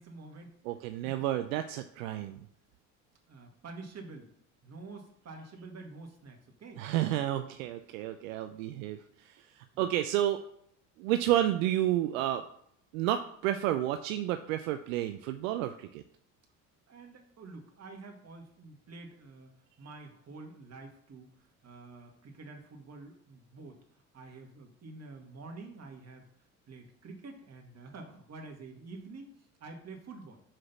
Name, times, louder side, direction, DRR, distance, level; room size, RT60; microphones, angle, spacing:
voice 1, 0.0-0.5 1.0-1.2 3.3-4.3 4.6-6.8 9.7-9.9 16.9-19.5 19.8-21.3 21.6-23.8 24.1-26.3 26.7-30.4, right 3 dB, 40° right, 2 dB, 2.1 m, -48 dB
voice 2, 0.6-2.4 6.8-10.4 11.0-12.4 12.9-16.0, right 13 dB, 80° right, 8 dB, 0.6 m, -31 dB
5.9 x 4.9 x 5.9 m, 0.68 s
hypercardioid pair, 60°, 40 cm